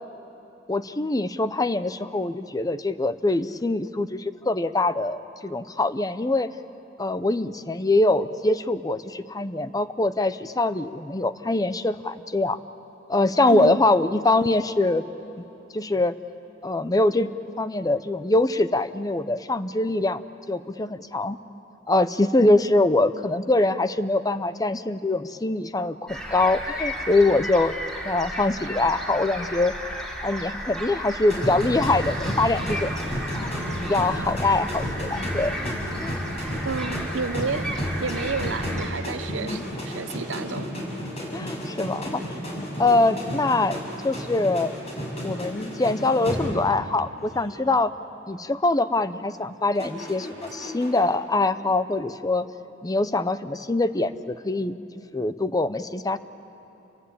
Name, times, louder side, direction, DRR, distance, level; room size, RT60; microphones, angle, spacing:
voice 1, 0.7-6.5 7.0-12.6 13.1-15.0 15.7-16.1 16.6-20.2 20.5-21.4 21.9-27.7 28.0-29.9 30.2-32.9 33.3-33.5 33.8-35.5 36.0-36.1 39.4-39.6 41.3-42.2 42.8-44.7 45.2-47.9 48.3-52.4 52.8-54.7 55.1-56.2, left 2 dB, 20° left, 12 dB, 0.7 m, -23 dB
voice 2, 13.5-13.8 36.6-40.8, right 4 dB, 80° right, 13 dB, 0.8 m, -31 dB
sound 1, 26.1-38.9, equal, 5° left, 3.2 m, -34 dB
sound 2, 31.3-46.9 47.2-47.5 49.8-51.1, equal, 35° left, 6.6 m, -32 dB
29.5 x 22.5 x 8.7 m, 3.0 s
head